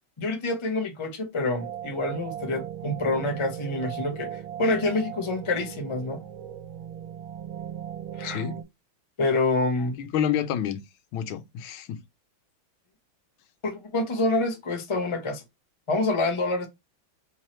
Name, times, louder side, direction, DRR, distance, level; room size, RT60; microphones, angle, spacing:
voice 1, 0.2-6.2 8.2-8.4 9.2-10.0 13.6-15.4 15.9-16.7, left 2 dB, 50° left, 0.3 m, -27 dB
sound 1, 1.6-8.6, right 9 dB, 85° right, 1.4 m, -38 dB
voice 2, 8.2-8.6 10.0-10.8 11.1-12.0, left 9 dB, 90° left, 1.4 m, -29 dB
3.6 x 3.0 x 4.3 m
omnidirectional pair, 2.2 m